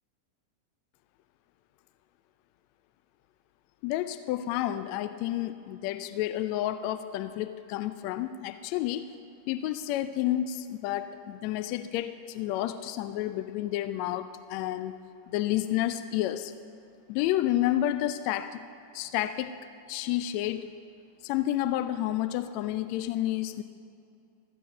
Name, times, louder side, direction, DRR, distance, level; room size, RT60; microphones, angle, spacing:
voice 1, 3.8-9.1 9.5-15.0 15.3-16.5 17.1-18.6 18.9-19.6 19.9-20.7 21.2-23.6, left 13 dB, 45° left, 11 dB, 0.3 m, -30 dB
13.5 x 8.4 x 4.0 m, 2.5 s
figure-of-eight pair, 90°, 0 cm